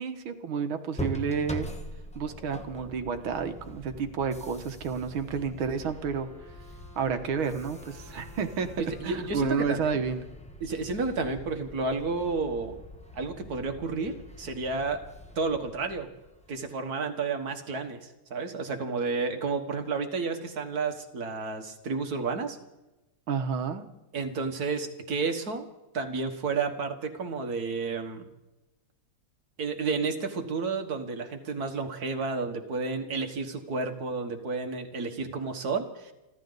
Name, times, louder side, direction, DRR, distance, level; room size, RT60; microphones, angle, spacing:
voice 1, 0.0-1.7 2.2-6.3 7.0-8.7 9.0-10.3 23.3-23.8, right 6 dB, 70° right, 8 dB, 2.0 m, -30 dB
sound 1, 0.9-16.7, right 1 dB, 5° left, 0.9 m, -43 dB
Wind instrument woodwind instrument, 5.9-10.8, left 2 dB, 70° left, 8.2 m, -54 dB
voice 2, 8.8-9.9 10.6-12.8 13.2-15.0 15.4-16.1 16.5-22.6 24.1-25.7 25.9-28.3 29.6-36.1, right 4 dB, 45° right, 6 dB, 1.9 m, -31 dB
30.0 x 12.0 x 4.0 m, 0.99 s
omnidirectional pair, 2.4 m